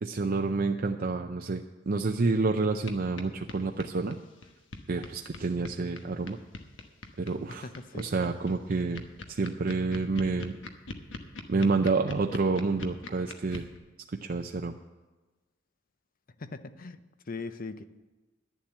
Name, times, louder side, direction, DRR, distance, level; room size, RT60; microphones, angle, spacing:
voice 1, 0.0-4.2 4.9-6.4 7.2-7.7 7.9-9.0 9.3-10.6 11.5-13.7 14.2-14.7, right 3 dB, 50° right, 4 dB, 0.5 m, -28 dB
sound 1, 2.9-3.0 3.2-3.3 3.5-13.8, left 3 dB, 80° left, 1.2 m, -41 dB
voice 2, 7.5-8.1 16.4-17.0 17.3-17.8, left 3 dB, 50° left, 12 dB, 0.7 m, -40 dB
11.0 x 7.4 x 8.7 m, 1.2 s
head